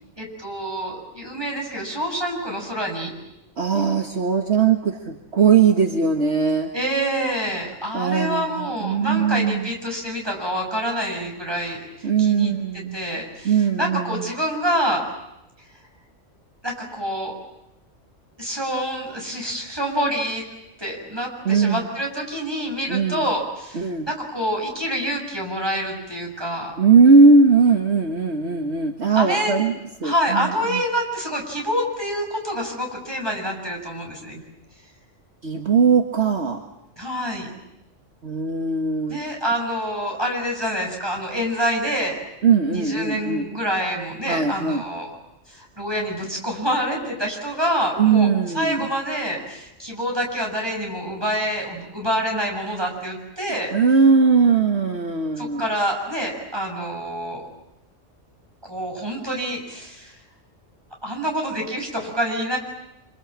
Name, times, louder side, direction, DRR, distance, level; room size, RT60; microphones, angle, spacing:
voice 1, 0.2-3.1 6.7-12.5 12.9-15.0 16.6-17.3 18.4-20.4 20.8-26.8 29.1-29.6 30.0-34.4 37.0-37.5 39.1-42.2 42.7-45.1 45.5-53.7 55.4-57.5 58.6-60.1 61.0-62.6, equal, 20° right, 1 dB, 6.7 m, -27 dB
voice 2, 3.6-6.7 7.9-9.7 12.0-13.0 13.5-14.3 21.5-21.8 22.9-23.3 23.7-24.1 26.8-29.7 30.0-30.8 35.4-36.6 38.2-39.2 42.4-43.5 44.3-44.8 48.0-48.9 53.7-55.6, right 5 dB, 60° right, 3 dB, 1.8 m, -19 dB
27.5 x 26.5 x 7.5 m, 0.87 s
omnidirectional pair, 1.3 m